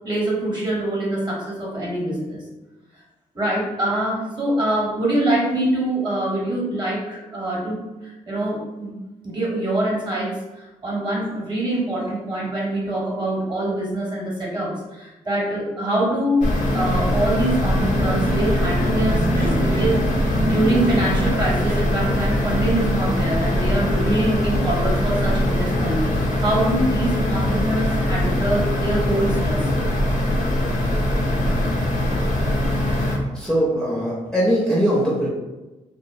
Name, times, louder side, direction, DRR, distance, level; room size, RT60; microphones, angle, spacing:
voice 1, 0.0-2.4 3.3-8.9 9.2-16.5 16.7-20.0 20.4-29.6 30.5-30.8, right 1 dB, 30° right, -4 dB, 1.0 m, -24 dB
sound 1, 16.4-33.2, left 1 dB, 60° left, 0.6 m, -22 dB
sound 2, 17.4-23.2, right 2 dB, 85° right, 0.6 m, -28 dB
voice 2, 33.3-35.3, equal, 5° left, -6 dB, 0.6 m, -21 dB
2.5 x 2.0 x 2.5 m, 1.1 s
cardioid pair, 75°, 14 cm